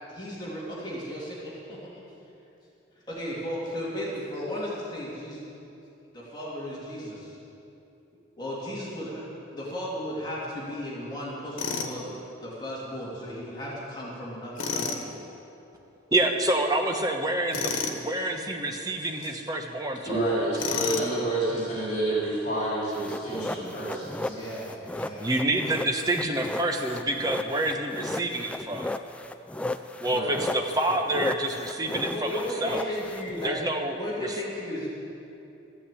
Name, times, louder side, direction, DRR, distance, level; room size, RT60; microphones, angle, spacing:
voice 1, 0.1-1.8 3.1-5.4 6.1-7.4 8.4-9.2 9.5-12.1 12.4-15.0 24.3-25.3 31.9-34.9, equal, 20° left, -6 dB, 2.6 m, -35 dB
Tools, 11.6-11.9 14.6-15.0 17.5-18.0 20.6-21.2, left 5 dB, 90° left, 1.3 m, -30 dB
voice 2, 16.1-20.2 25.2-28.9 30.0-32.9 33.4-34.3, right 1 dB, 20° right, 3 dB, 1.0 m, -28 dB
voice 3, 20.0-24.4 30.0-30.4, right 1 dB, 40° left, -8 dB, 3.9 m, -29 dB
sound 1, 22.9-33.5, left 1 dB, 5° left, 0.3 m, -35 dB
14.0 x 8.8 x 8.4 m, 2.8 s
head